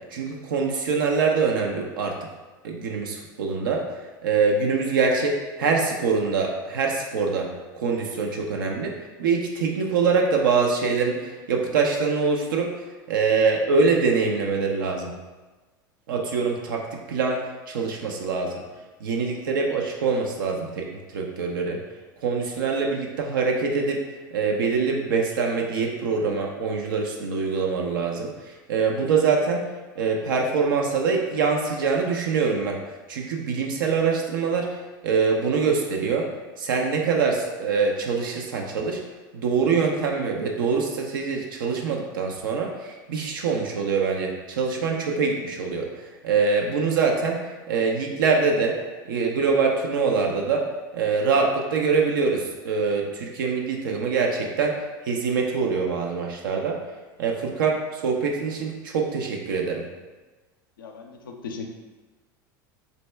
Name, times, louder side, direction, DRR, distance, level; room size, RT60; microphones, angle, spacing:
voice 1, 0.1-2.2 2.6-7.5 7.7-12.7 13.1-15.1 16.1-18.5 19.0-21.8 22.2-24.0 24.3-29.6 30.0-32.8 33.1-36.3 36.6-39.0 39.3-48.8 49.0-50.6 50.9-54.8 55.0-56.8 57.2-59.8, right 5 dB, 80° right, 0 dB, 0.5 m, -24 dB
voice 2, 60.8-61.8, left 4 dB, 90° left, 3 dB, 0.5 m, -37 dB
4.0 x 2.2 x 3.2 m, 1.3 s
hypercardioid pair, 90°, 11 cm